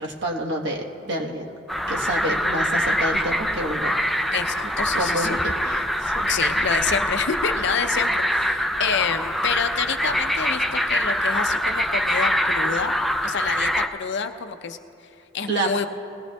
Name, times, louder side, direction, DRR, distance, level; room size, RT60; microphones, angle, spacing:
voice 1, 0.0-1.6 1.9-3.9 4.9-6.3 15.5-15.7, right 1 dB, 65° right, 0 dB, 1.2 m, -28 dB
sound 1, 1.7-13.9, equal, ahead, 0.4 m, -24 dB
voice 2, 4.3-5.4 6.3-14.8 15.3-15.9, left 6 dB, 65° left, 7 dB, 0.6 m, -28 dB
20.5 x 17.0 x 2.3 m, 2.7 s
head